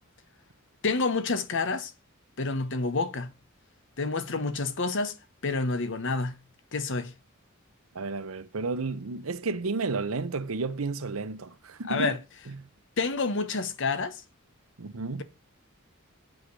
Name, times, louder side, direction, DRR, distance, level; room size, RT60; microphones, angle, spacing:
voice 1, 0.8-1.9 2.4-3.3 4.0-5.2 5.4-6.4 6.7-7.1 11.9-12.2 13.0-14.2, left 3 dB, 60° left, 1.0 m, -28 dB
voice 2, 7.9-12.2 12.5-12.6 14.8-15.2, right 3 dB, 80° right, 0.8 m, -32 dB
7.9 x 4.9 x 6.5 m
head